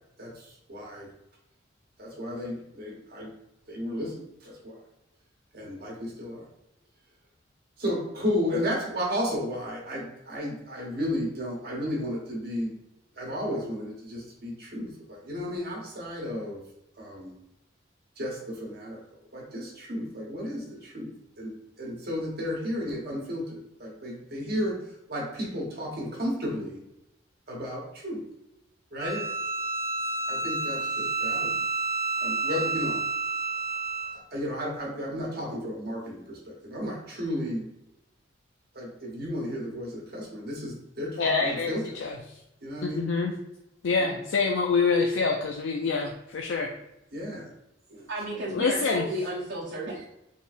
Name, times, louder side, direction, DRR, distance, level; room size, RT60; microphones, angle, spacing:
voice 1, 0.2-1.1 2.0-3.3 3.7-4.8 5.5-6.4 7.8-12.7 13.2-16.6 17.0-17.3 18.2-19.0 19.3-21.5 21.8-24.8 25.1-26.8 27.5-28.2 28.9-29.2 30.3-31.6 32.2-33.0 34.3-37.7 38.7-42.0 42.6-43.1 44.0-44.1 47.1-47.5 47.9-48.1, equal, 50° right, -2 dB, 1.1 m, -33 dB
Bowed string instrument, 29.0-34.2, right 3 dB, 15° right, 0.4 m, -30 dB
voice 2, 41.2-42.2 42.8-43.3 43.8-46.7 48.5-49.1, left 4 dB, 65° left, 2 dB, 0.4 m, -26 dB
voice 3, 48.1-50.0, right 1 dB, 75° right, -7 dB, 1.0 m, -33 dB
4.1 x 3.6 x 2.5 m, 0.85 s
head